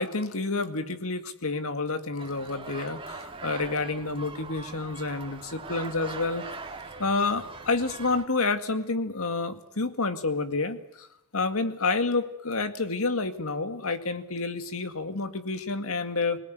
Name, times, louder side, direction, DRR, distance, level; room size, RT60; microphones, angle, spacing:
voice 1, 0.0-6.4 7.0-11.1 11.3-16.4, left 3 dB, 70° left, 9 dB, 2.0 m, -29 dB
sound 1, 2.2-8.2, right 3 dB, 25° right, 2.5 m, -41 dB
25.5 x 18.5 x 9.4 m, 0.87 s
head